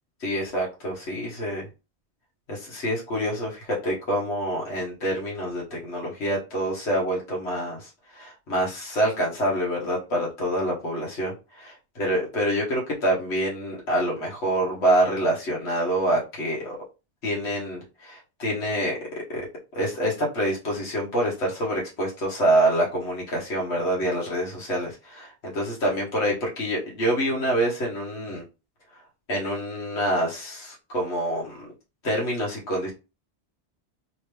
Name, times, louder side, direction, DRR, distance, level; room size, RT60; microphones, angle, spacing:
voice 1, 0.2-1.7 2.5-7.9 8.1-11.7 12.0-16.8 17.2-19.5 19.7-28.4 29.3-31.7 32.0-32.9, right 1 dB, 75° left, -3 dB, 1.6 m, -26 dB
3.5 x 3.4 x 3.2 m, 0.29 s
omnidirectional pair, 1.1 m